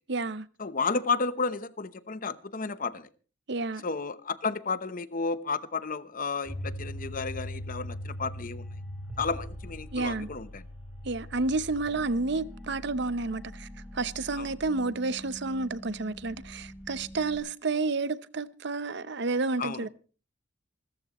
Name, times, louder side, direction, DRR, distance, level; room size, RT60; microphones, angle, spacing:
voice 1, 0.1-0.5 3.5-3.8 9.9-10.3 11.0-13.7 13.9-19.9, right 3 dB, 65° right, 0.8 m, -30 dB
voice 2, 0.6-3.1 3.8-8.6 9.2-10.6 14.4-14.5 19.6-19.9, left 4 dB, 45° left, 0.9 m, -32 dB
sound 1, 6.5-17.4, left 1 dB, 5° right, 4.8 m, -41 dB
27.0 x 14.0 x 3.1 m
head